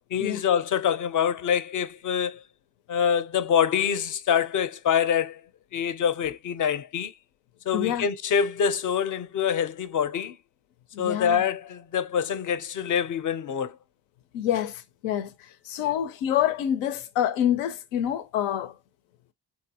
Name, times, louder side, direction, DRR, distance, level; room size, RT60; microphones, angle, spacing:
voice 1, 0.1-2.4 2.9-5.4 5.7-7.1 7.7-10.4 11.0-13.7, left 8 dB, 45° left, 0.6 m, -25 dB
voice 2, 7.7-8.1 10.9-11.4 14.3-15.3 15.7-18.7, left 11 dB, 85° left, 0.6 m, -27 dB
3.6 x 2.3 x 2.8 m
supercardioid pair, 55°, 46 cm